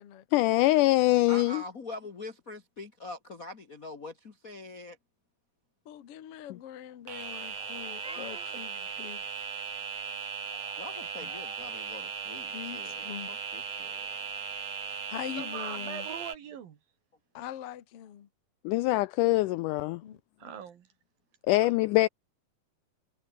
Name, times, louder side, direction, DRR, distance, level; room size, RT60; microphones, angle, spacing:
voice 1, 0.3-1.6 18.7-20.0 21.5-22.1, left 19 dB, 90° left, 1.8 m, -23 dB
voice 2, 1.3-5.0 10.8-14.1, left 2 dB, 70° left, 0.8 m, -44 dB
voice 3, 5.9-9.2 12.5-13.3 15.1-16.1 17.3-18.3 20.0-20.5, left 10 dB, 50° left, 2.1 m, -42 dB
sound 1, 7.1-16.4, right 7 dB, 45° right, 3.3 m, -38 dB
Meow, 7.5-8.7 10.5-11.6, equal, ahead, 2.4 m, -50 dB
voice 4, 8.0-8.7 15.3-16.8 20.4-20.9 21.5-21.7 22.0-22.1, right 8 dB, 75° right, 3.9 m, -43 dB
omnidirectional pair, 4.2 m